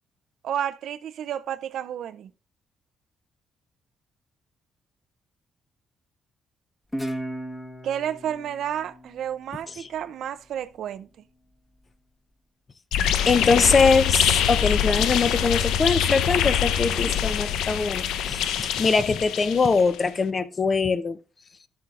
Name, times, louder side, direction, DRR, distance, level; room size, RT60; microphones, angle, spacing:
voice 1, 0.4-2.3 7.8-11.1, right 9 dB, 70° right, 0.5 m, -31 dB
Guitar, 6.9-10.2, right 1 dB, 10° left, 1.2 m, -36 dB
sound 1, 12.9-20.0, left 9 dB, 90° left, 0.6 m, -24 dB
voice 2, 13.3-18.5 18.8-21.2, left 4 dB, 35° left, 0.7 m, -22 dB
11.5 x 7.6 x 2.4 m
cardioid pair, 90°, 0 cm